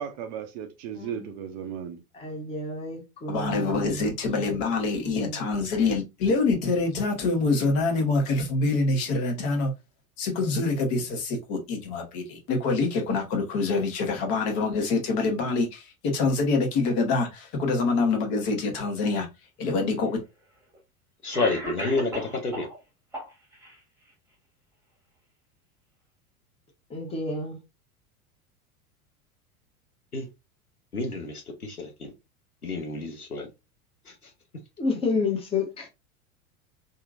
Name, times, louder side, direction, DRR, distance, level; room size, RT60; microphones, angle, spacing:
voice 1, 0.0-2.0, right 8 dB, 35° right, 0.4 m, -35 dB
voice 2, 0.9-1.3 2.1-4.5 5.0-5.4 26.9-27.6 34.8-35.9, left 3 dB, 15° left, 0.8 m, -30 dB
voice 3, 3.3-9.7 10.2-19.3 19.6-20.2, left 3 dB, 45° left, 1.1 m, -25 dB
Cough, 19.6-19.7 20.7-20.8 21.3-22.8 23.1-23.8, right 1 dB, 5° right, 1.2 m, -35 dB
voice 4, 21.2-22.7 30.1-30.3 30.9-32.1 32.6-33.5 34.1-34.2, left 3 dB, 90° left, 0.8 m, -29 dB
2.8 x 2.6 x 2.4 m
figure-of-eight pair, 80°, 43 cm